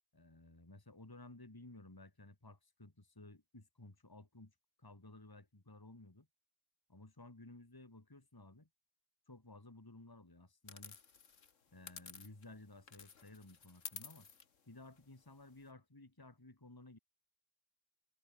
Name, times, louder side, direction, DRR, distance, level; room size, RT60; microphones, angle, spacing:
voice 1, 0.1-6.3 6.9-8.7 9.3-11.0 11.7-14.3 14.7-17.0, left 2 dB, 15° left, 2.1 m, -56 dB
sound 1, 10.7-12.6 12.9-15.7, left 6 dB, 85° left, 2.0 m, -53 dB
omnidirectional pair, 1.3 m